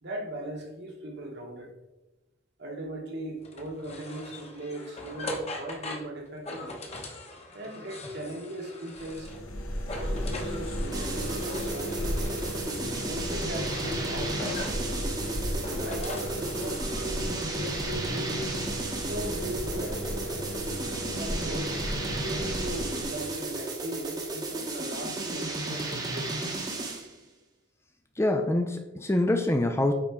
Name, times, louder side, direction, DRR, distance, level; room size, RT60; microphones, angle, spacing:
voice 1, 0.0-1.7 2.6-6.8 7.5-9.3 9.9-12.2 12.8-14.6 15.5-18.4 19.0-20.2 21.1-21.8 22.0-26.4, right 1 dB, 50° right, 2 dB, 1.2 m, -38 dB
sound 1, 3.4-9.5 9.8-12.6 13.2-14.9 15.4-17.1, left 1 dB, 30° left, 1.0 m, -41 dB
sound 2, 8.9-23.6, equal, 80° left, 1.1 m, -34 dB
sound 3, 10.9-27.1, right 2 dB, 20° right, 0.9 m, -34 dB
voice 2, 28.2-29.9, left 1 dB, 10° left, 5 dB, 0.4 m, -25 dB
8.8 x 4.2 x 3.6 m, 1.0 s
head